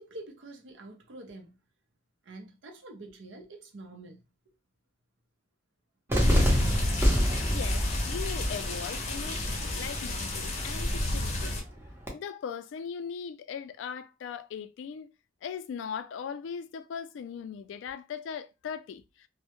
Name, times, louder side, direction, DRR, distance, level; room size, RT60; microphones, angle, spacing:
voice 1, 0.0-1.6 2.2-4.5, right 2 dB, 80° right, 0.6 m, -47 dB
Cheering / Fireworks, 6.1-12.1, equal, 15° right, 0.7 m, -30 dB
sound 1, 6.2-11.6, left 1 dB, 35° left, 0.6 m, -29 dB
voice 2, 7.5-11.6 12.1-15.1 15.4-19.3, left 7 dB, 90° left, 0.3 m, -39 dB
2.1 x 2.0 x 2.9 m
head